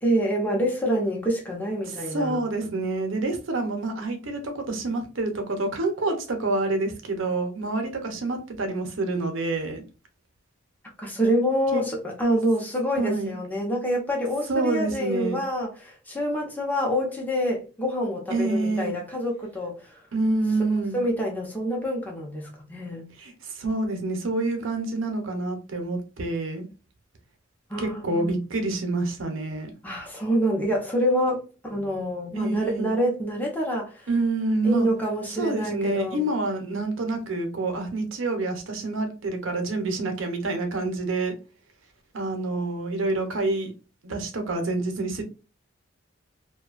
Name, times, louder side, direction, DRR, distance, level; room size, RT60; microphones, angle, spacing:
voice 1, 0.0-2.4 11.0-20.0 20.7-23.1 27.7-28.3 29.8-34.1 34.6-36.3, equal, 10° left, 0.7 m, -27 dB
voice 2, 1.8-9.8 11.7-11.8 13.0-13.4 14.5-15.4 18.3-19.0 20.1-21.0 23.2-26.7 27.8-29.7 32.3-32.9 34.1-34.9 35.4-41.4 42.1-43.7 44.0-45.2, right 2 dB, 85° right, 0.7 m, -27 dB
2.6 x 2.2 x 2.4 m
head